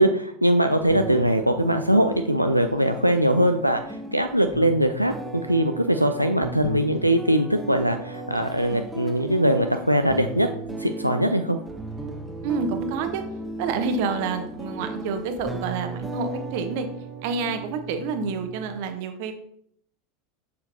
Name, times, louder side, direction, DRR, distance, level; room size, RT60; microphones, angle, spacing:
voice 1, 0.0-10.5 10.8-11.6, right 1 dB, 90° right, 6 dB, 0.3 m, -21 dB
sound 1, 0.7-18.8, right 3 dB, 5° right, 0.8 m, -36 dB
voice 2, 12.4-13.2 13.6-16.9 17.2-19.3, right 5 dB, 50° right, 8 dB, 0.9 m, -28 dB
6.9 x 6.7 x 2.6 m, 0.67 s
figure-of-eight pair, 80°, 0 cm